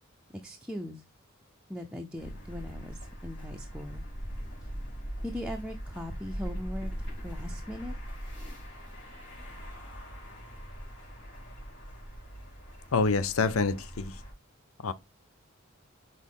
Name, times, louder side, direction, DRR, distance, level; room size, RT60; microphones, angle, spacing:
voice 1, 0.3-1.0 1.7-4.0 4.6-4.7 5.2-6.9 7.2-7.9, left 1 dB, 5° right, 0.6 m, -39 dB
sound 1, 2.2-14.3, equal, 60° left, 3.8 m, -41 dB
voice 2, 12.9-14.2 14.8-14.9, left 4 dB, 85° left, 0.6 m, -27 dB
6.3 x 4.2 x 3.5 m
head